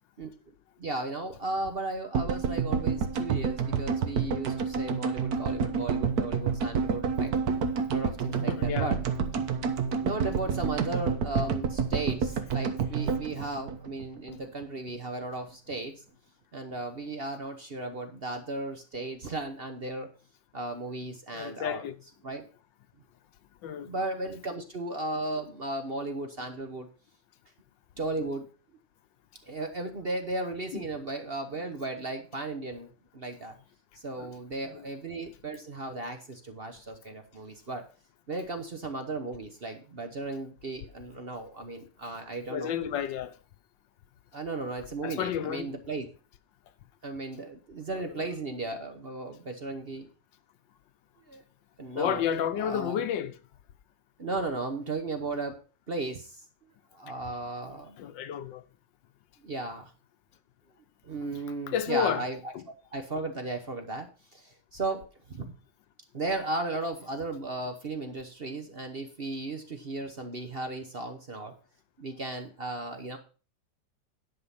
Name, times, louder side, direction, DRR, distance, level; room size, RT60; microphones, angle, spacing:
voice 1, 0.8-7.3 7.9-9.0 10.0-15.9 16.5-20.1 20.5-21.8 22.2-22.4 23.7-26.9 28.0-28.5 29.4-33.5 34.0-37.9 38.3-42.7 44.3-46.1 47.0-50.1 51.3-51.4 51.8-52.2 52.6-53.0 54.2-55.6 55.9-56.4 56.9-58.0 59.4-59.9 61.0-62.5 62.9-65.5 66.1-71.6 72.0-73.2, right 2 dB, 40° right, 1.0 m, -35 dB
sound 1, 2.1-14.4 14.6-14.7 14.9-15.0, right 6 dB, 60° right, 1.4 m, -29 dB
voice 2, 8.3-8.9 21.3-21.9 23.6-23.9 30.7-30.8 34.2-34.3 34.7-34.8 42.5-43.4 45.0-45.7 47.9-48.0 51.9-53.3 58.0-58.6 61.7-62.2 62.5-62.6, left 9 dB, 80° left, 1.5 m, -31 dB
10.5 x 5.7 x 5.6 m
omnidirectional pair, 2.0 m